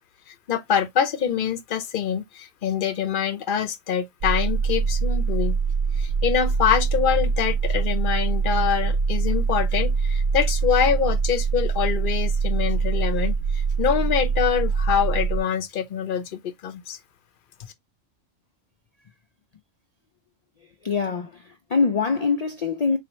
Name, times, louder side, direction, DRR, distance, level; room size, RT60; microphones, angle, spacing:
voice 1, 0.3-5.5 6.0-17.0, left 8 dB, 50° left, 0.7 m, -25 dB
sound 1, 4.2-15.4, right 5 dB, 60° right, 0.6 m, -23 dB
voice 2, 20.8-23.0, left 5 dB, 90° left, 0.3 m, -24 dB
4.2 x 2.8 x 3.0 m
omnidirectional pair, 1.3 m